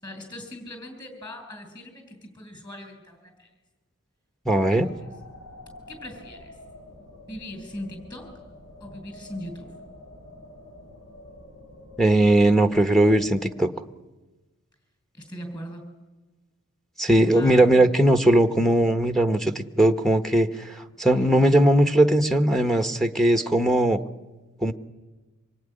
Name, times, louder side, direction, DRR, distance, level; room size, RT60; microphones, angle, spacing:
voice 1, 0.0-3.5 4.5-4.9 5.9-6.5 7.3-8.3 8.8-9.7 15.1-15.8 17.2-18.0 21.1-21.3, left 1 dB, 20° left, 7 dB, 6.4 m, -40 dB
voice 2, 4.5-4.9 12.0-13.7 17.0-24.0 24.6-24.7, right 1 dB, ahead, 7 dB, 1.0 m, -19 dB
sound 1, 4.8-13.4, left 1 dB, 80° left, 7.1 m, -47 dB
25.5 x 21.5 x 10.0 m, 1.2 s
head